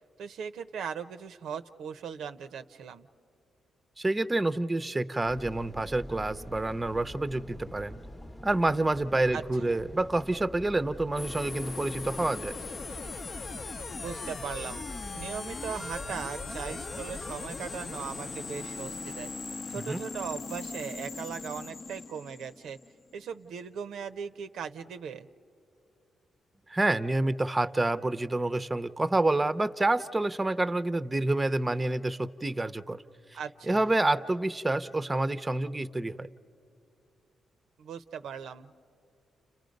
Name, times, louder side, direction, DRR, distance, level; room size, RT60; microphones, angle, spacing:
voice 1, 0.2-3.1 9.3-9.8 14.0-14.8 15.1-19.3 19.7-22.8 23.1-25.3 33.3-33.9 37.8-38.7, right 7 dB, 80° right, 9 dB, 0.6 m, -39 dB
voice 2, 4.0-8.0 8.4-12.5 19.8-20.0 26.7-33.0 33.3-33.4 33.7-36.3, right 2 dB, 20° right, 11 dB, 0.6 m, -28 dB
sound 1, 5.2-17.3, equal, 20° left, 0.9 m, -45 dB
sound 2, 11.2-23.1, left 4 dB, 50° left, 0.7 m, -39 dB
30.0 x 29.5 x 5.3 m, 2.5 s
cardioid pair, 70°, 0 cm